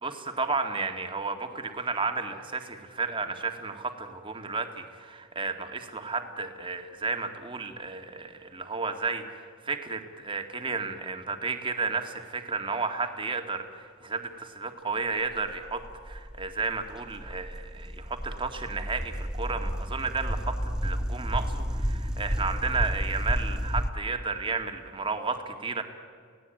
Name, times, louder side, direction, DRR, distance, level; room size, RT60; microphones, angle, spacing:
voice 1, 0.0-25.8, right 4 dB, 25° right, 5 dB, 2.0 m, -33 dB
sound 1, 15.4-23.9, equal, 5° right, 1.1 m, -31 dB
28.5 x 17.5 x 9.0 m, 2.1 s
head